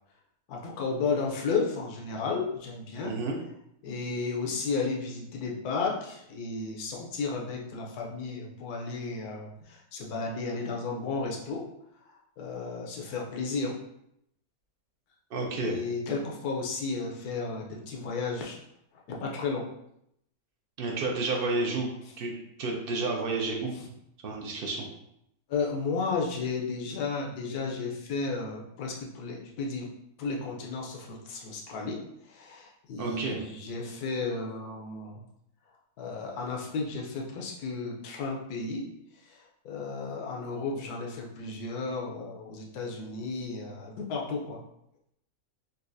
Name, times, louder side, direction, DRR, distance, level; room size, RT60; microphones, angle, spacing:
voice 1, 0.5-3.1 3.8-11.7 12.4-13.8 15.5-18.6 19.1-19.6 25.5-29.9 30.2-32.0 32.3-35.2 36.0-38.9 39.3-39.4 39.6-44.6, left 4 dB, 85° left, 0 dB, 1.2 m, -33 dB
voice 2, 3.0-3.4 15.3-15.8 20.8-21.9 22.2-23.7 24.2-24.8 33.0-33.4, right 3 dB, 75° right, 0 dB, 0.5 m, -30 dB
4.1 x 2.3 x 2.5 m, 0.77 s
omnidirectional pair, 1.6 m